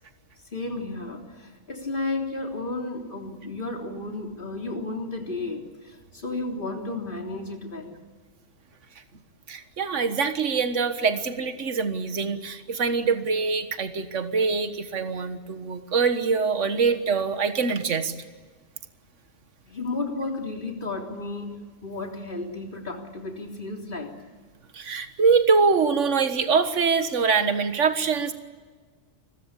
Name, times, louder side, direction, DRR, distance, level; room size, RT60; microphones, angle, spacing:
voice 1, 0.5-8.0 19.6-24.2, left 2 dB, 40° left, 2 dB, 3.8 m, -33 dB
voice 2, 9.5-18.1 24.7-28.3, right 5 dB, 70° right, 9 dB, 1.9 m, -24 dB
29.5 x 21.5 x 8.3 m, 1.4 s
omnidirectional pair, 1.3 m